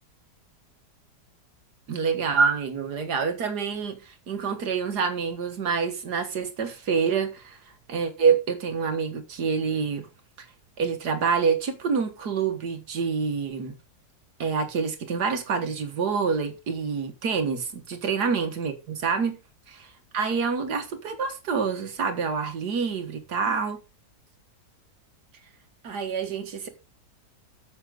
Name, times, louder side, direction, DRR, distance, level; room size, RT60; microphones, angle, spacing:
voice 1, 1.9-7.6 7.9-10.1 10.4-10.5 10.8-13.8 14.4-19.4 20.1-23.8 25.8-26.7, right 5 dB, 80° right, 2.0 m, -27 dB
9.7 x 7.4 x 3.9 m
omnidirectional pair, 1.7 m